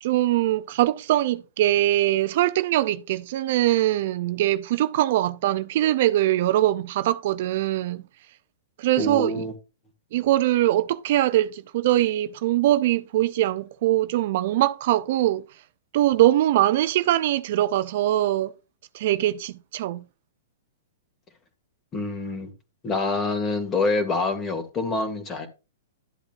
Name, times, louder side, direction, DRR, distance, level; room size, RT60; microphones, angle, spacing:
voice 1, 0.0-8.0 8.8-9.4 10.1-15.4 15.9-18.5 18.9-20.0, right 14 dB, 55° right, 0.6 m, -22 dB
voice 2, 9.0-9.5 21.9-22.5 22.8-25.5, left 3 dB, 20° left, 2.3 m, -26 dB
13.0 x 7.9 x 2.7 m
hypercardioid pair, 135°, 0 cm